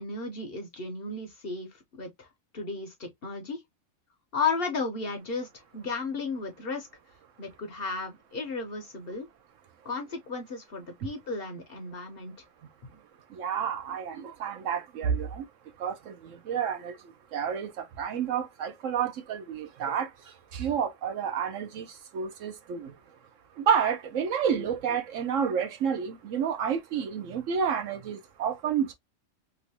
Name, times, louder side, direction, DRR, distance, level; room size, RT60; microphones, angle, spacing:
voice 1, 0.0-2.3 2.5-3.6 4.3-6.9 7.4-9.3 9.8-12.3, left 4 dB, 50° left, 0.8 m, -34 dB
voice 2, 13.3-15.5 15.8-23.0 23.6-28.9, right 7 dB, 70° right, 0.9 m, -30 dB
3.0 x 2.5 x 2.7 m
omnidirectional pair, 1.5 m